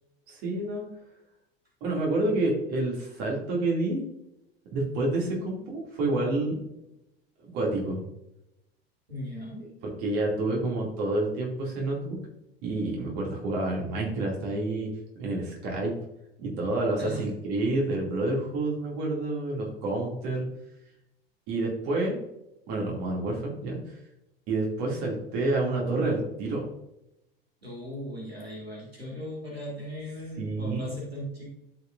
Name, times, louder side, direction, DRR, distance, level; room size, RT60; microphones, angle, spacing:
voice 1, 0.3-0.8 1.8-4.0 4.7-6.6 7.4-8.0 10.0-12.2 12.6-14.9 15.2-15.9 16.4-20.5 21.5-22.2 22.7-23.9 24.5-26.6 30.4-30.8, right 2 dB, 50° right, -2 dB, 2.5 m, -28 dB
voice 2, 9.1-9.7 17.0-17.3 27.6-31.5, equal, 85° right, -4 dB, 2.8 m, -38 dB
13.5 x 4.9 x 2.6 m, 0.87 s
figure-of-eight pair, 75°, 30 cm